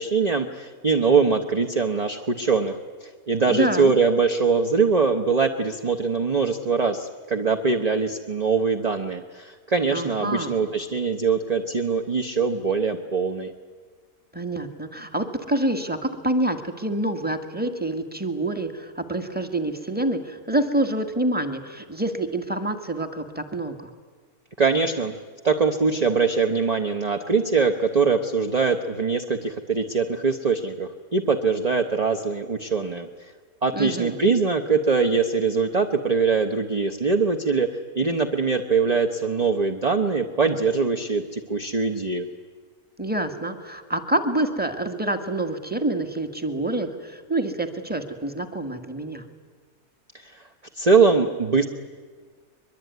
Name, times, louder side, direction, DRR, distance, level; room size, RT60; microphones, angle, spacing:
voice 1, 0.0-13.5 24.6-25.1 25.4-33.1 33.6-42.3 50.2-50.4 50.7-51.7, right 4 dB, 30° right, 5 dB, 1.1 m, -22 dB
voice 2, 3.5-3.9 9.9-10.5 14.3-23.9 33.7-34.3 43.0-49.2, right 1 dB, 5° right, 7 dB, 1.7 m, -27 dB
23.0 x 22.5 x 9.5 m, 1.5 s
omnidirectional pair, 1.6 m